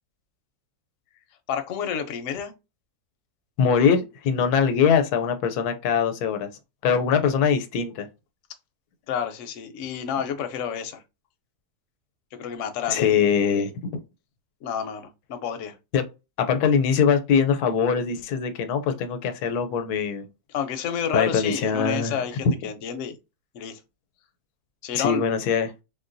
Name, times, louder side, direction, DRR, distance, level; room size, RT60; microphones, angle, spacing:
voice 1, 1.5-2.5 9.1-11.0 12.3-13.2 14.6-15.8 20.5-23.2 23.5-23.8 24.8-25.2, left 8 dB, 65° left, 0.8 m, -30 dB
voice 2, 3.6-6.5 6.8-8.1 12.9-13.9 15.9-16.0 16.4-20.3 21.1-22.2 24.9-25.7, left 6 dB, 85° left, 1.1 m, -22 dB
3.7 x 2.1 x 2.5 m
omnidirectional pair, 1.6 m